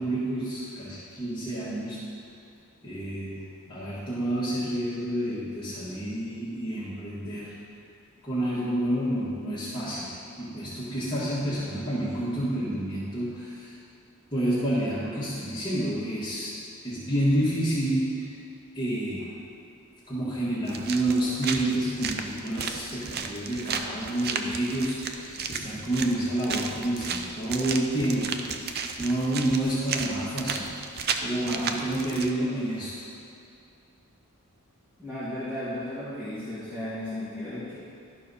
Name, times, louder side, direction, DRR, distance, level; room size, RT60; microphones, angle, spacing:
voice 1, 0.0-2.0 2.8-3.4 3.7-7.5 8.2-13.7 14.3-16.5 16.8-18.3 18.8-19.3 20.1-28.4 29.0-30.7 31.2-33.0, right 1 dB, 20° left, -11 dB, 1.7 m, -29 dB
sound 1, 20.7-32.3, right 5 dB, 45° right, 0.5 m, -34 dB
voice 2, 35.0-37.8, left 1 dB, 10° right, -14 dB, 1.9 m, -34 dB
12.0 x 4.5 x 5.6 m, 2.5 s
head